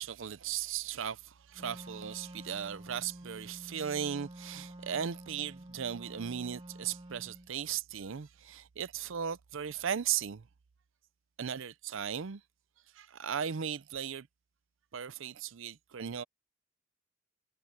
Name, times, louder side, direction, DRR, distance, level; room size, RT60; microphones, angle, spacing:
voice 1, 0.0-10.5 11.4-12.4 12.9-14.3 14.9-16.2, right 8 dB, 70° right, 0.6 m, -37 dB
Wind instrument woodwind instrument, 1.5-7.5, right 1 dB, 25° right, 1.6 m, -49 dB
head